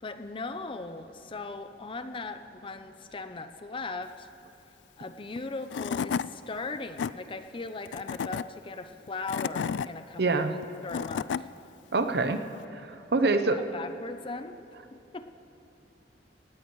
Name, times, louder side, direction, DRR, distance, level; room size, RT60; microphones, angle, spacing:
voice 1, 0.0-4.3 5.0-10.5 10.8-11.5 13.2-14.6 14.9-15.3, left 3 dB, 30° left, 9 dB, 0.6 m, -38 dB
Tools / Wood, 5.4-5.5 5.7-6.3 6.7-7.1 7.9-8.4 9.1-9.9 10.6-11.4, left 7 dB, 80° left, 0.3 m, -31 dB
voice 2, 10.2-10.5 11.9-12.4 12.7-13.6, right 3 dB, 65° right, 8 dB, 0.8 m, -25 dB
18.0 x 17.5 x 3.1 m, 2.9 s
head